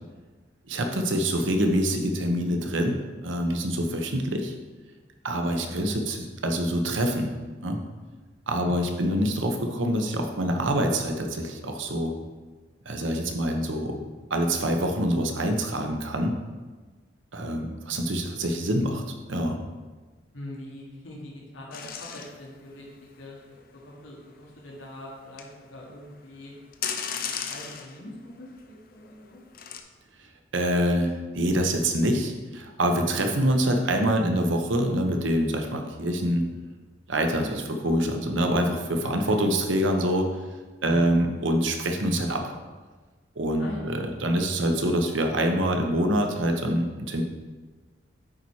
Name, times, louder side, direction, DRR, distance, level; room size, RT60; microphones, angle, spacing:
voice 1, 0.7-4.5 5.2-7.3 7.6-7.8 8.5-12.1 12.8-14.0 14.3-16.3 17.3-19.6 30.5-36.5 37.1-40.3 40.8-42.5 43.4-47.2, equal, 80° right, 4 dB, 0.9 m, -25 dB
voice 2, 3.7-4.0 5.5-5.8 8.5-8.9 20.3-23.6 23.8-26.8 27.2-29.4 39.0-39.3 40.8-41.1 43.6-43.8, left 1 dB, 85° left, -3 dB, 1.5 m, -43 dB
sound 1, 21.7-23.5 25.2-25.5 25.8-25.9 26.3-26.4 26.7-28.2 28.6-28.7 29.5-29.8, left 7 dB, 50° left, 0.6 m, -34 dB
8.8 x 4.2 x 4.8 m, 1.3 s
head